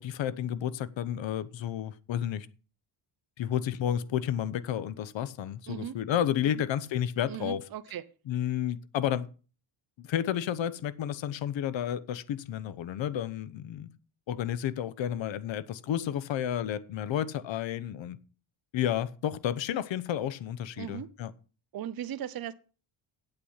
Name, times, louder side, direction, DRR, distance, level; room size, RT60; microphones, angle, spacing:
voice 1, 0.0-2.5 3.4-7.7 8.3-9.3 10.0-13.9 14.3-18.2 18.7-21.3, left 10 dB, 70° left, 1.0 m, -31 dB
voice 2, 7.3-8.0 20.8-21.1 21.7-22.5, right 10 dB, 50° right, 0.8 m, -37 dB
8.9 x 8.3 x 5.6 m
cardioid pair, 100°, 48 cm